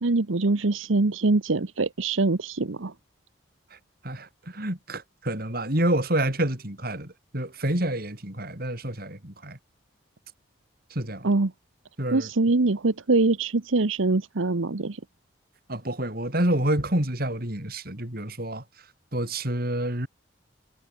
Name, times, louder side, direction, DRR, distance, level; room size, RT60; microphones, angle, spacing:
voice 1, 0.0-2.9 11.2-11.5 12.1-15.0, right 3 dB, 80° right, 1.0 m, -23 dB
voice 2, 4.0-9.6 10.9-11.3 12.0-12.3 15.7-18.6 19.1-20.1, right 1 dB, 50° right, 4.7 m, -28 dB
head